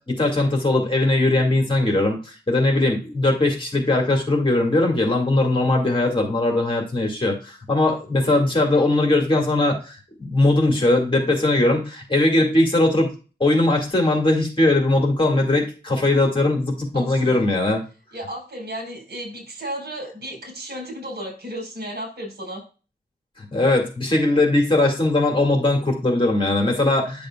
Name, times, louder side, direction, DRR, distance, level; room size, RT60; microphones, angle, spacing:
voice 1, 0.1-13.1 13.4-17.8 23.4-27.3, left 2 dB, 30° left, 1 dB, 2.3 m, -20 dB
voice 2, 16.9-17.4 18.1-22.6, right 1 dB, 70° right, 0 dB, 4.8 m, -34 dB
10.0 x 6.9 x 2.4 m, 0.34 s
wide cardioid pair, 125°, 18 cm